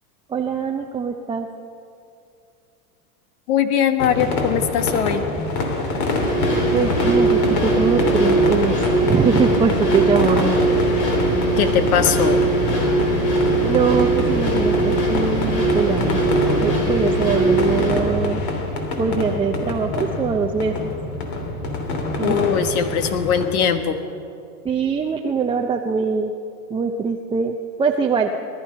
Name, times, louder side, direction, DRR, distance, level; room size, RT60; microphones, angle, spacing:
voice 1, 0.3-1.5 6.7-10.5 13.6-16.2 16.6-18.4 19.0-20.9 22.2-22.4 24.6-26.3 26.7-28.4, right 5 dB, 10° right, 2 dB, 0.5 m, -22 dB
voice 2, 3.5-5.2 11.6-12.4 22.2-24.0, left 8 dB, 70° left, 8 dB, 1.6 m, -20 dB
sound 1, 4.0-23.5, left 2 dB, 50° left, 3.1 m, -26 dB
sound 2, 6.2-17.9, right 2 dB, 90° left, 4.8 m, -20 dB
19.5 x 12.5 x 5.6 m, 2.5 s
hypercardioid pair, 115°, 46 cm